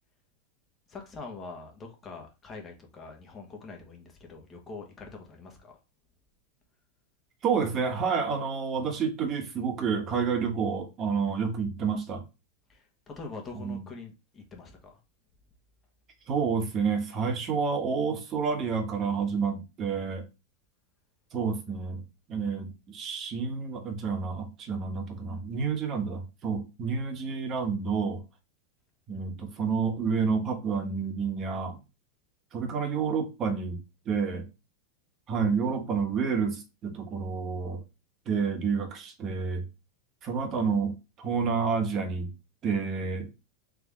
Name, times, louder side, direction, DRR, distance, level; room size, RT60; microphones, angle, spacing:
voice 1, 0.9-5.8 12.7-15.0, left 3 dB, 25° left, 1.5 m, -44 dB
voice 2, 7.4-12.2 13.5-13.9 16.3-20.2 21.3-22.0 22.3-28.2 29.1-31.8 32.5-34.4 35.3-37.8 38.3-39.6 40.2-42.3 42.6-43.3, right 5 dB, 35° right, 1.3 m, -29 dB
3.7 x 3.3 x 3.7 m
supercardioid pair, 125°, 0 cm